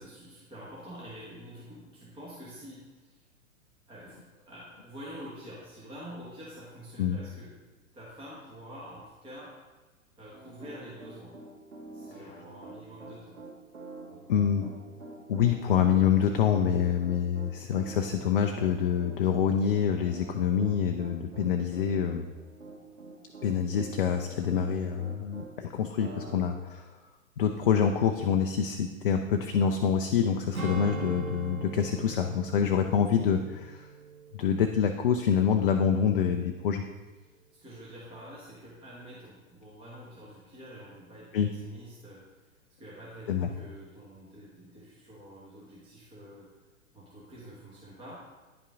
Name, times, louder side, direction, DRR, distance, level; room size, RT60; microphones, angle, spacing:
voice 1, 0.0-3.2 3.9-7.6 7.9-9.5 10.2-11.4 11.9-13.4 37.6-42.2 42.8-46.5 46.9-48.2, equal, 10° right, -7 dB, 1.3 m, -47 dB
Piano, 10.3-25.5 26.0-26.4, right 2 dB, 70° right, 1.7 m, -46 dB
voice 2, 14.3-14.7 15.3-22.2 23.4-26.8 27.4-33.9 34.3-36.8 41.3-41.5 43.3-43.5, left 8 dB, 40° left, 5 dB, 0.5 m, -26 dB
Strum, 30.5-35.3 35.6-35.9, right 5 dB, 90° right, 0.8 m, -41 dB
9.7 x 5.5 x 3.6 m, 1.2 s
figure-of-eight pair, 110°, 41 cm